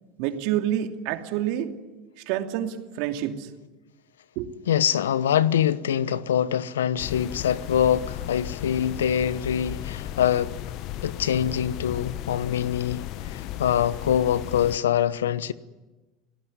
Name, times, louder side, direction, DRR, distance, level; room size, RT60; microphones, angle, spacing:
voice 1, 0.2-1.7 2.3-3.5 4.4-4.5, right 11 dB, 65° right, 2.7 m, -28 dB
voice 2, 4.7-10.5 11.0-15.5, left 9 dB, 80° left, 1.0 m, -24 dB
sound 1, 7.0-14.8, left 13 dB, 55° left, 1.0 m, -35 dB
30.0 x 18.5 x 9.7 m
hypercardioid pair, 80°, 0 cm